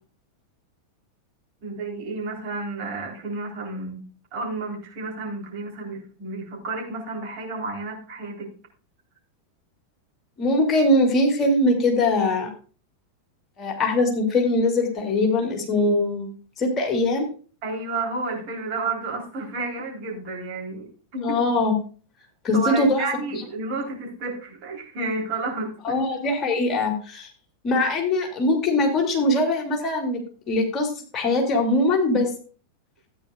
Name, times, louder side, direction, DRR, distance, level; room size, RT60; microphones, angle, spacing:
voice 1, 1.6-4.1 4.3-8.5 17.6-21.4 22.5-26.0, right 3 dB, 40° right, -1 dB, 4.0 m, -31 dB
voice 2, 10.4-12.5 13.6-16.3 16.6-17.3 21.2-21.7 22.4-23.0 25.8-27.3 27.6-30.2 30.5-32.3, left 2 dB, 25° left, 1 dB, 2.8 m, -22 dB
14.5 x 9.3 x 2.5 m, 0.38 s
figure-of-eight pair, 90°, 0 cm